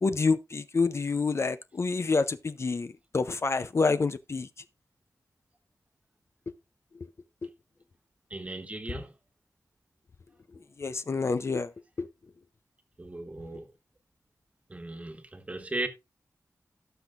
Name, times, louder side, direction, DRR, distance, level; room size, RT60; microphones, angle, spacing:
voice 1, 0.0-4.5 6.9-7.1 7.4-7.5 10.8-11.7 12.0-12.1, left 4 dB, 50° left, 0.5 m, -28 dB
voice 2, 8.3-9.1 13.0-13.7 14.7-15.9, right 2 dB, 25° right, 1.4 m, -37 dB
17.5 x 6.2 x 2.5 m
wide cardioid pair, 115°, 6 cm